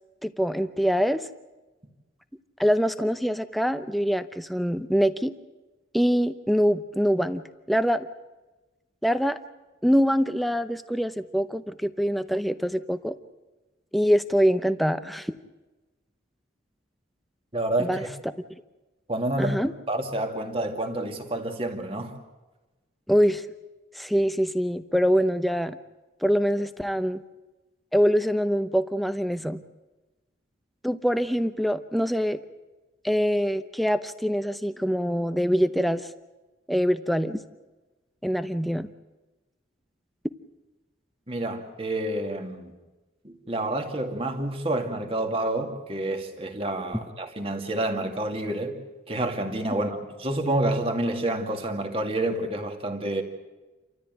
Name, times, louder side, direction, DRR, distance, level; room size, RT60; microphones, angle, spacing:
voice 1, 0.2-1.2 2.6-5.3 5.9-8.1 9.0-9.4 9.8-13.1 13.9-15.3 17.8-18.1 19.4-19.7 23.1-23.5 23.9-25.8 26.2-27.2 27.9-29.6 30.8-32.4 33.0-36.1 36.7-37.4 38.2-38.9, equal, ahead, 0.7 m, -24 dB
voice 2, 17.5-18.1 19.1-19.6 19.9-22.2 41.3-42.7 43.2-48.8 49.1-53.2, right 1 dB, 30° right, 2.3 m, -28 dB
29.0 x 14.0 x 9.2 m
head